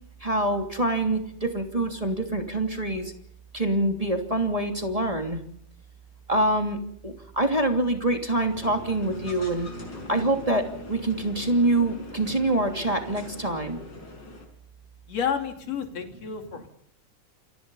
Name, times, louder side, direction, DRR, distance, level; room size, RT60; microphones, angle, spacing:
voice 1, 0.2-3.1 3.5-5.4 6.3-6.8 7.0-9.7 10.1-13.8, right 1 dB, 10° right, 3 dB, 2.7 m, -25 dB
sound 1, 8.5-14.5, left 2 dB, 35° left, 6.8 m, -42 dB
voice 2, 15.1-16.7, left 7 dB, 60° left, 5 dB, 4.1 m, -30 dB
28.0 x 24.0 x 5.6 m, 0.69 s
omnidirectional pair, 3.4 m